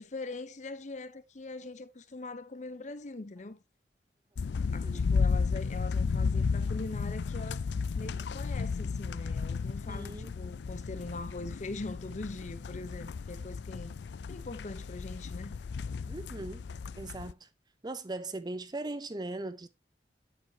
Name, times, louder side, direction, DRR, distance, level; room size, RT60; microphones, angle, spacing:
voice 1, 0.0-3.6 4.7-7.7 7.9-13.9 14.3-15.6, left 2 dB, 45° left, 0.7 m, -42 dB
sound 1, 4.4-17.3, left 5 dB, 80° left, 0.4 m, -33 dB
voice 2, 9.9-10.4 16.1-16.6 16.9-17.5 17.8-19.7, right 2 dB, 25° right, 0.6 m, -39 dB
8.9 x 7.8 x 2.8 m
head